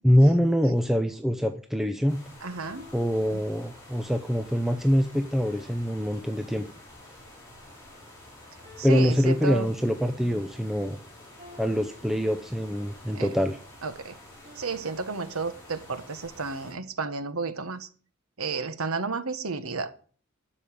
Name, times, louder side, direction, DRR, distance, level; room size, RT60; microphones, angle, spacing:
voice 1, 0.0-2.2 2.9-6.7 8.8-11.0 11.6-13.6, equal, ahead, 0.6 m, -24 dB
sound 1, 2.1-16.7, left 1 dB, 15° left, 6.2 m, -49 dB
voice 2, 2.4-2.8 3.3-3.4 8.8-9.7 13.1-13.3 13.8-14.2 14.6-17.9 18.4-19.9, right 4 dB, 85° right, 1.2 m, -32 dB
sound 2, 2.6-4.1 5.4-7.3 8.6-10.2 11.4-13.0 14.4-16.0, left 2 dB, 25° right, 4.1 m, -54 dB
12.5 x 5.5 x 8.6 m
head